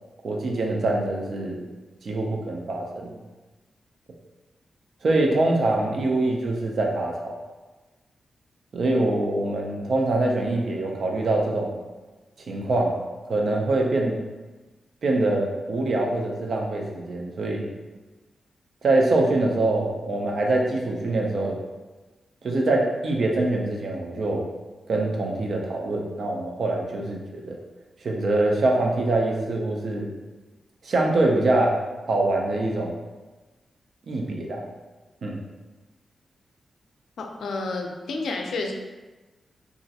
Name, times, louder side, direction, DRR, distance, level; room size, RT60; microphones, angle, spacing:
voice 1, 0.2-1.7 2.0-3.1 5.0-7.3 8.7-11.8 12.5-13.0 13.3-14.2 15.0-17.7 18.8-21.6 22.4-24.5 24.9-27.6 28.0-30.1 30.8-31.8 32.1-32.9 34.1-34.6 35.2-35.4, right 2 dB, 50° right, 0 dB, 0.4 m, -24 dB
voice 2, 37.2-38.7, left 3 dB, 85° left, 2 dB, 0.4 m, -30 dB
3.0 x 2.4 x 2.7 m, 1.2 s
wide cardioid pair, 180°, 0 cm